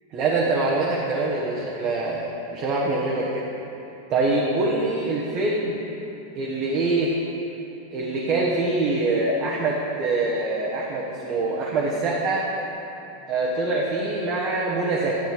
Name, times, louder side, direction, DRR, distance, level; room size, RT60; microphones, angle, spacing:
voice 1, 0.1-2.2 2.5-3.4 4.1-5.8 6.3-7.2 7.9-12.5 13.3-15.2, right 2 dB, 35° right, -4 dB, 1.3 m, -24 dB
11.5 x 8.8 x 3.9 m, 3.0 s
figure-of-eight pair, 90°, 0 cm